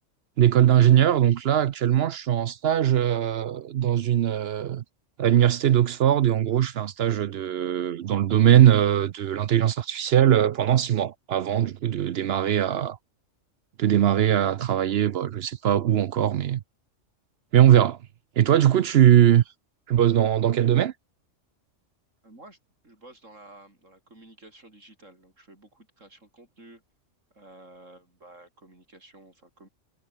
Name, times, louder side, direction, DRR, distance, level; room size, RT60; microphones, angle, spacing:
voice 1, 0.4-4.8 5.2-13.0 13.8-16.6 17.5-18.0 18.4-19.4 19.9-20.9, right 11 dB, 60° right, 0.8 m, -20 dB
voice 2, 22.2-22.6 22.8-26.8 27.3-29.7, right 2 dB, 85° right, 7.2 m, -51 dB
omnidirectional pair, 1.3 m